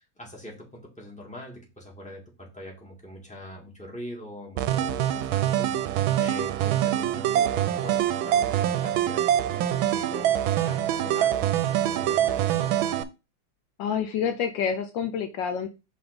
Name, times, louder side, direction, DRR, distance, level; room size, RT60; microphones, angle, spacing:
voice 1, 0.0-12.8, equal, 5° left, -2 dB, 1.7 m, -43 dB
sound 1, 4.6-13.0, right 11 dB, 80° right, 1.3 m, -24 dB
voice 2, 13.8-15.7, left 7 dB, 75° left, 6 dB, 1.3 m, -28 dB
5.8 x 3.5 x 5.1 m, 0.28 s
omnidirectional pair, 2.2 m